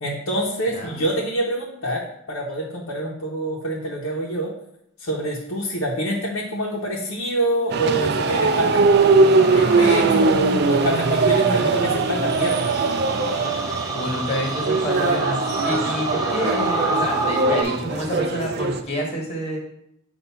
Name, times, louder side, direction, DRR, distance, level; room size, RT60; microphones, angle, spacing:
voice 1, 0.0-4.5 5.0-10.4 10.6-12.7, right 1 dB, 85° left, -4 dB, 1.0 m, -26 dB
voice 2, 0.7-1.1 13.9-15.4 15.6-19.6, equal, 30° left, 0 dB, 1.4 m, -28 dB
sound 1, 7.7-18.8, right 3 dB, 50° right, 0.4 m, -20 dB
sound 2, 8.1-17.6, right 2 dB, 15° right, 0.8 m, -29 dB
7.1 x 2.6 x 5.5 m, 0.77 s
head